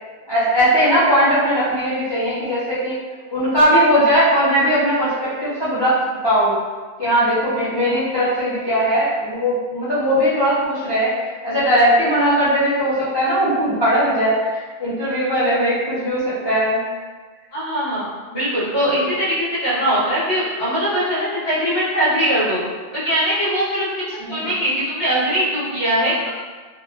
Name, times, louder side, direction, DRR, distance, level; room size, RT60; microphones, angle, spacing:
voice 1, 0.3-2.9 3.3-6.0 6.2-6.6 7.0-11.1 11.4-16.8 24.2-24.5, equal, 40° left, -11 dB, 0.4 m, -19 dB
voice 2, 17.5-18.1 18.3-19.3 19.6-22.6 22.9-23.9 24.3-26.3, equal, 60° left, -11 dB, 1.2 m, -21 dB
2.9 x 2.2 x 2.2 m, 1.4 s
omnidirectional pair, 1.1 m